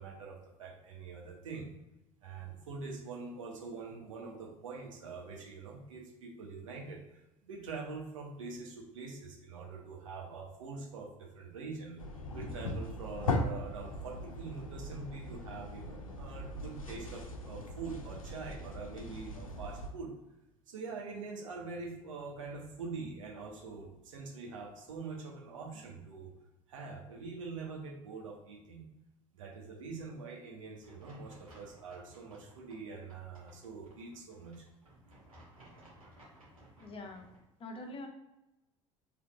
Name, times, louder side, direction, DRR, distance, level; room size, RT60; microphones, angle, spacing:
voice 1, 0.0-1.7 2.2-12.0 12.3-20.1 20.7-26.3 26.7-28.8 29.3-34.6, right 4 dB, 70° right, 0 dB, 1.0 m, -44 dB
sound 1, 12.0-19.9, left 2 dB, 80° left, 0.5 m, -39 dB
sound 2, 30.8-37.4, right 1 dB, 85° right, 1.5 m, -58 dB
voice 2, 36.8-37.3 37.6-38.1, left 2 dB, 30° left, 4 dB, 0.8 m, -44 dB
4.8 x 3.4 x 2.4 m, 0.94 s
figure-of-eight pair, 65°, 17 cm